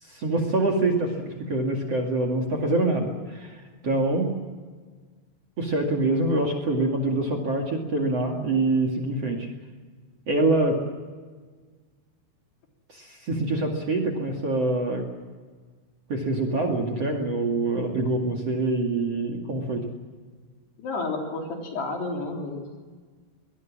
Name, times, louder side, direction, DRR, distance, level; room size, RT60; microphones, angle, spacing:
voice 1, 0.0-4.3 5.6-9.5 10.3-10.8 12.9-15.1 16.1-19.8, right 2 dB, 40° right, 5 dB, 2.7 m, -25 dB
voice 2, 20.8-22.6, left 3 dB, 65° left, 1 dB, 5.4 m, -31 dB
24.0 x 19.5 x 7.4 m, 1.5 s
omnidirectional pair, 5.1 m